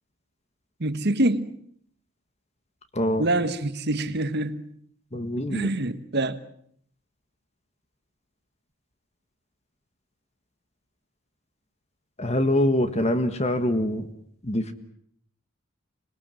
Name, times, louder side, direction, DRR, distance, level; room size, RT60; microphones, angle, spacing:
voice 1, 0.8-1.5 3.2-4.7 5.5-6.4, right 1 dB, 50° right, 1.3 m, -25 dB
voice 2, 2.9-3.3 5.1-5.7 12.2-14.1 14.4-14.7, left 1 dB, 30° left, 1.5 m, -24 dB
26.0 x 21.0 x 7.7 m
head